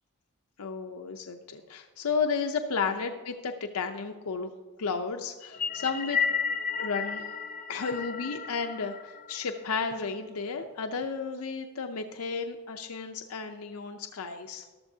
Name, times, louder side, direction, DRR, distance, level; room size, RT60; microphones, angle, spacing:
voice 1, 0.6-4.5 4.8-6.2 6.8-7.3 7.7-14.6, left 5 dB, 85° left, 5 dB, 0.6 m, -33 dB
sound 1, 5.4-9.9, left 6 dB, 35° left, 0.5 m, -33 dB
14.0 x 12.0 x 2.8 m, 1.4 s
head